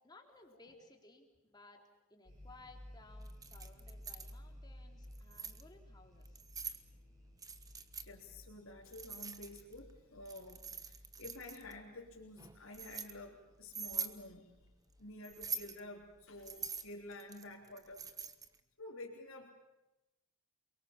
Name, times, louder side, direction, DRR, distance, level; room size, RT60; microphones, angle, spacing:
voice 1, 0.0-1.8 2.1-6.4, left 3 dB, 20° left, 2 dB, 3.6 m, -60 dB
sound 1, 2.3-16.9, left 1 dB, 35° right, 5.4 m, -57 dB
Keys jangling, 3.3-4.3 5.0-5.6 6.3-6.8 7.4-8.1 8.9-9.8 10.3-11.7 12.4-13.1 13.7-14.2 15.2-15.8 16.4-18.6, right 6 dB, 15° right, 1.2 m, -44 dB
voice 2, 8.0-14.5 15.0-18.1 18.8-19.5, left 2 dB, 70° left, -4 dB, 3.6 m, -50 dB
30.0 x 23.0 x 7.3 m, 0.98 s
head